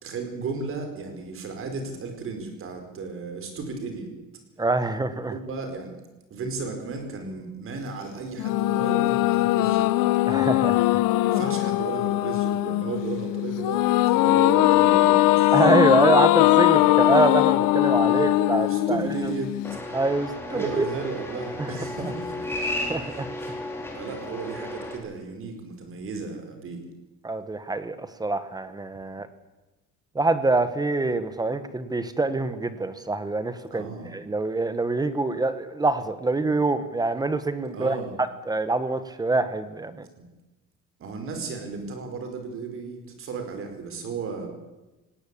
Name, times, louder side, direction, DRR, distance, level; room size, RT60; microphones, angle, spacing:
voice 1, 0.0-4.1 5.3-5.9 6.3-9.9 11.2-15.5 18.0-18.4 18.6-19.6 20.5-22.5 22.8-23.2 23.9-26.8 29.0-29.2 33.7-34.1 37.7-38.2 41.0-44.5, right 4 dB, 40° right, 6 dB, 5.0 m, -34 dB
voice 2, 4.6-5.3 10.3-11.0 15.5-19.1 19.9-20.9 21.6-21.7 22.8-23.3 27.2-29.3 30.1-40.1, right 3 dB, 10° right, 12 dB, 1.1 m, -25 dB
sound 1, 8.4-19.8, left 17 dB, 75° left, 0.8 m, -21 dB
sound 2, 19.6-25.0, left 1 dB, 5° left, 3.8 m, -34 dB
19.0 x 18.0 x 8.5 m, 1.1 s
cardioid pair, 170°, 32 cm